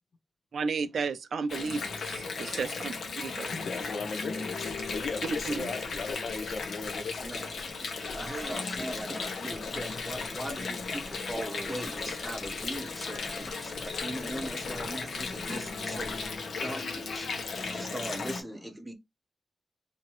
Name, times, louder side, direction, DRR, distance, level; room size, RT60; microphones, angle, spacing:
voice 1, 0.5-3.5 5.5-5.7, right 5 dB, 80° right, 0.4 m, -33 dB
Water, 1.5-18.4, left 4 dB, 90° left, 1.0 m, -36 dB
voice 2, 3.5-7.2 17.5-17.6, left 4 dB, 70° left, 0.7 m, -37 dB
sound 1, 4.8-16.6, left 2 dB, 35° left, 0.9 m, -49 dB
voice 3, 7.2-17.4 17.7-18.9, right 1 dB, 10° right, 0.8 m, -40 dB
4.5 x 2.8 x 3.0 m
wide cardioid pair, 135°, 0 cm